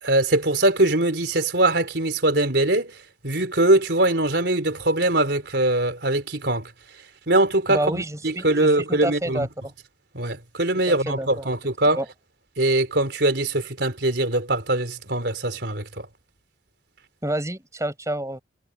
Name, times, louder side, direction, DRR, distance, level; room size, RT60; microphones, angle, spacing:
voice 1, 0.0-2.9 3.2-6.7 7.3-9.5 10.1-12.0 12.6-16.1, right 2 dB, 70° right, 4.0 m, -22 dB
voice 2, 7.7-9.5 10.9-11.5 11.9-12.1 17.2-18.4, right 1 dB, 15° right, 7.1 m, -28 dB
head